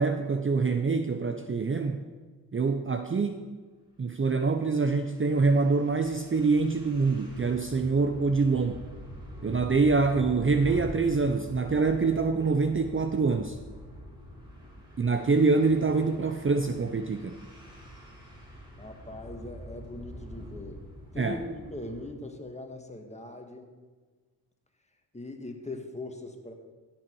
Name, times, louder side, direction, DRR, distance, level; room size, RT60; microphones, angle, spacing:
voice 1, 0.0-2.0 2.5-3.5 4.0-8.8 9.4-13.6 15.0-17.4 21.2-21.4, right 4 dB, 30° right, 7 dB, 0.7 m, -25 dB
sound 1, 4.4-22.1, equal, 10° right, 4.0 m, -45 dB
voice 2, 18.8-20.9 21.1-23.7 25.1-26.5, left 1 dB, 15° left, 3 dB, 1.9 m, -40 dB
16.0 x 6.1 x 4.7 m, 1.4 s
cardioid pair, 50°, 41 cm